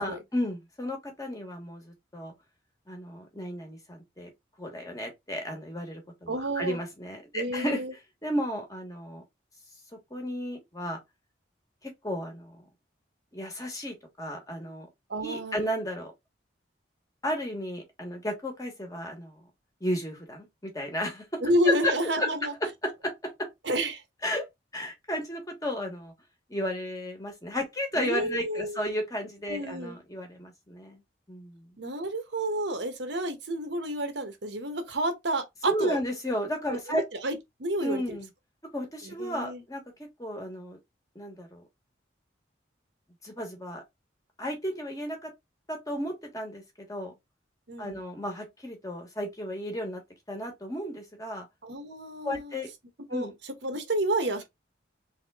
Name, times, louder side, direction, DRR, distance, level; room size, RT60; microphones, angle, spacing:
voice 1, 0.0-2.3 2.9-4.3 4.6-7.8 8.2-9.2 10.1-11.0 11.8-12.6 13.3-14.9 15.2-16.1 17.2-19.4 19.8-21.2 21.6-21.9 22.2-22.3 22.8-23.5 24.2-24.4 24.7-26.1 26.5-31.0 31.3-31.7 35.7-37.0 37.8-38.3 38.7-40.8 41.1-41.6 43.2-43.8 44.4-45.3 45.7-46.6 46.9-47.1 47.8-50.0 50.3-51.4 52.2-52.7 53.1-53.3, equal, 20° left, 1.4 m, -33 dB
voice 2, 6.3-6.8 7.3-7.9 15.1-15.6 21.4-22.5 23.6-24.0 28.0-28.8 29.5-30.0 31.8-36.0 36.7-38.2 39.0-39.6 47.7-48.0 51.6-52.5 53.1-54.4, right 1 dB, 70° right, 1.2 m, -30 dB
3.6 x 3.6 x 3.5 m
head